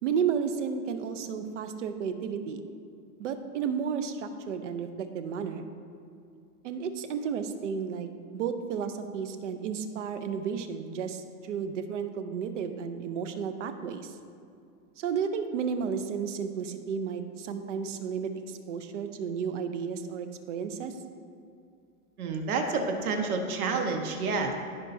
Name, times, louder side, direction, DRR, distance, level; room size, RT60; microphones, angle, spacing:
voice 1, 0.0-2.6 3.2-5.7 6.6-8.1 8.3-14.2 15.0-21.0, right 6 dB, 50° right, 9 dB, 0.7 m, -32 dB
voice 2, 22.2-24.5, right 4 dB, 70° right, 3 dB, 1.4 m, -29 dB
15.0 x 5.7 x 2.7 m, 2.5 s
supercardioid pair, 170°, 46 cm